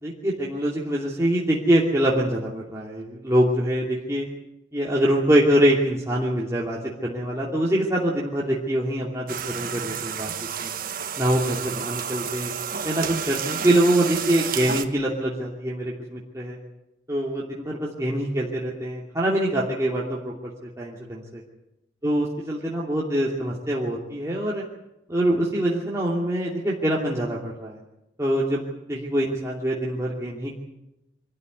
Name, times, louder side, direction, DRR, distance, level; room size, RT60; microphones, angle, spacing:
voice 1, 0.0-4.3 4.7-10.3 10.6-10.7 11.2-12.5 12.8-16.6 17.1-20.3 20.6-21.4 22.0-24.6 25.1-27.8 28.2-28.6 28.9-30.5, right 1 dB, 15° right, -5 dB, 2.8 m, -24 dB
sound 1, 9.3-14.8, right 7 dB, 50° right, 1.5 m, -31 dB
25.0 x 13.5 x 9.7 m, 0.91 s
head